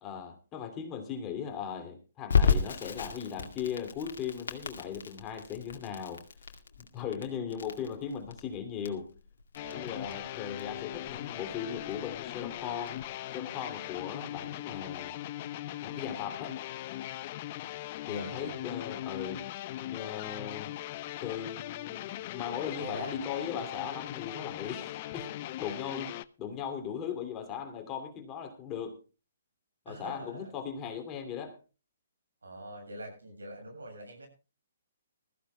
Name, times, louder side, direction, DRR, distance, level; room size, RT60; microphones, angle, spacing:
voice 1, 0.0-6.3 6.8-9.1 9.7-13.0 13.3-15.2 15.8-16.6 18.1-19.5 19.9-20.7 21.2-29.0 29.8-31.6, left 7 dB, 25° left, 2.7 m, -38 dB
Crackle, 2.3-13.0, left 6 dB, 70° left, 2.1 m, -33 dB
sound 1, 9.6-26.3, left 14 dB, 40° left, 0.6 m, -40 dB
voice 2, 9.6-10.2 18.1-18.6 22.8-23.1 29.9-30.5 32.4-34.3, right 1 dB, 85° right, 7.3 m, -44 dB
21.0 x 14.5 x 2.3 m
hypercardioid pair, 135°, 0 cm